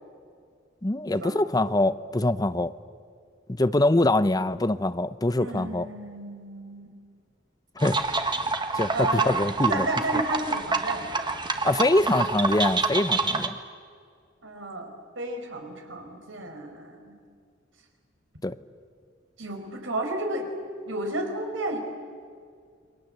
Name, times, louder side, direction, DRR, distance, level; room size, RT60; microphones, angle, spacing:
voice 1, 0.8-2.7 3.5-5.9 7.8-8.0 8.7-9.9 11.6-13.6 18.4-18.5, left 2 dB, 20° left, 14 dB, 0.7 m, -24 dB
voice 2, 5.4-6.9 8.9-9.4 9.7-11.3 14.4-17.2 19.4-20.5 20.9-21.8, right 2 dB, 90° right, 4 dB, 5.4 m, -32 dB
sound 1, 7.8-13.5, right 4 dB, 25° right, 1.6 m, -27 dB
29.0 x 24.0 x 8.1 m, 2.1 s
head